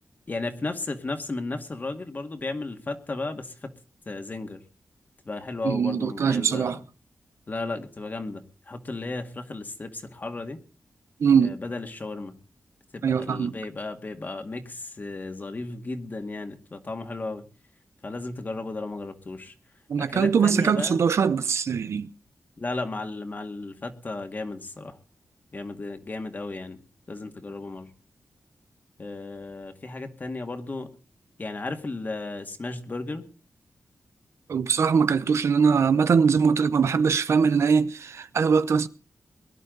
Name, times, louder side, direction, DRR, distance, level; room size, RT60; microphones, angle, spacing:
voice 1, 0.3-3.7 4.1-4.6 5.3-6.8 7.5-10.6 11.4-12.3 12.9-17.4 18.0-19.5 20.0-21.0 22.6-25.0 25.5-26.8 27.1-27.9 29.0-30.9 31.4-33.3, left 3 dB, 40° left, 2.1 m, -34 dB
voice 2, 5.6-6.8 11.2-11.6 13.0-13.5 19.9-22.1 34.5-38.9, right 6 dB, 80° right, 0.7 m, -22 dB
22.5 x 11.0 x 3.9 m
wide cardioid pair, 85°, 5 cm